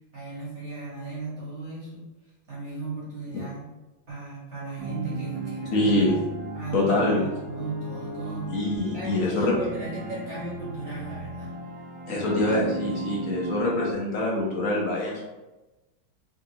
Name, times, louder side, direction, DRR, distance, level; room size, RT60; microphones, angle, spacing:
voice 1, 0.1-2.1 2.5-3.7 4.1-6.1 6.5-8.6 8.9-11.6, right 2 dB, 35° right, -8 dB, 1.7 m, -36 dB
sound 1, 4.8-13.9, right 1 dB, 80° right, 1.7 m, -36 dB
voice 2, 5.7-6.2 6.7-7.2 8.5-9.6 12.1-15.3, left 1 dB, 55° left, -3 dB, 0.9 m, -25 dB
3.8 x 3.5 x 2.8 m, 1.1 s
omnidirectional pair, 2.2 m